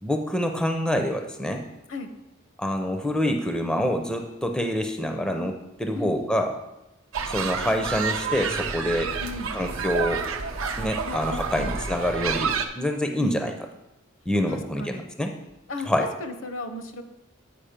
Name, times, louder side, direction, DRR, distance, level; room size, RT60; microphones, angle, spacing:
voice 1, 0.0-1.6 2.6-6.6 7.3-9.1 9.5-10.2 10.8-13.5 14.3-15.3 15.8-16.1, equal, 5° left, 4 dB, 0.5 m, -26 dB
sound 1, 7.1-12.7, right 5 dB, 75° right, 0.7 m, -29 dB
voice 2, 11.0-11.7 13.2-13.4 14.5-15.1 15.7-17.0, left 2 dB, 65° left, 8 dB, 0.8 m, -35 dB
8.8 x 5.0 x 5.1 m, 0.93 s
head